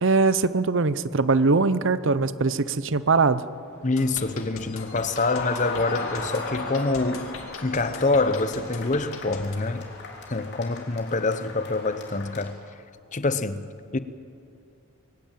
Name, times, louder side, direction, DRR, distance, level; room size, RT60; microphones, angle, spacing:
voice 1, 0.0-3.5, right 4 dB, 60° right, 0.7 m, -21 dB
sound 1, 3.2-12.5, left 3 dB, 50° left, 3.4 m, -38 dB
voice 2, 3.8-7.4 7.6-9.9 10.3-12.6 13.1-14.0, left 3 dB, 35° left, 0.7 m, -26 dB
sound 2, 4.0-9.6, left 4 dB, 70° left, 2.4 m, -41 dB
22.0 x 16.0 x 9.0 m
head